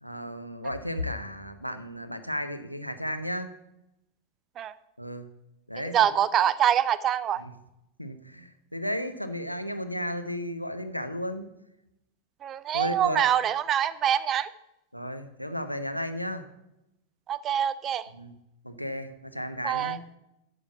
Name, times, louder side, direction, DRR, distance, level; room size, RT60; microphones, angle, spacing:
voice 1, 0.0-3.5 5.0-5.3 5.7-6.0 7.4-7.5 8.0-11.5 12.7-13.3 14.9-16.5 18.1-18.3 18.6-20.0, equal, 90° left, 8 dB, 0.8 m, -34 dB
voice 2, 5.9-7.4 12.4-14.5 17.3-18.0 19.6-20.0, right 10 dB, 30° right, 16 dB, 0.5 m, -25 dB
8.8 x 6.2 x 6.8 m, 0.87 s
figure-of-eight pair, 90°, 0 cm